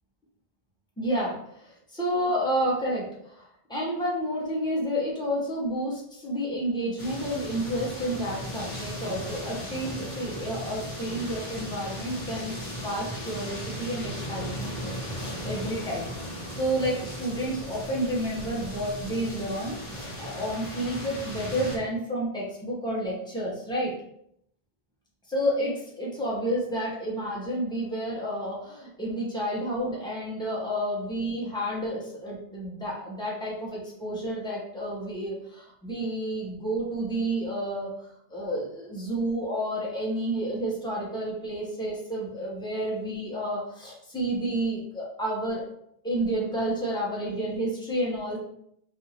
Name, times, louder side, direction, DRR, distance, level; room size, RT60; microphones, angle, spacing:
voice 1, 1.0-16.1 16.6-23.9 25.3-37.9 38.3-45.6 46.0-48.4, right 1 dB, 5° left, -6 dB, 1.0 m, -30 dB
sound 1, 7.0-21.8, equal, 50° left, 1.2 m, -37 dB
2.8 x 2.7 x 4.2 m, 0.72 s
omnidirectional pair, 1.0 m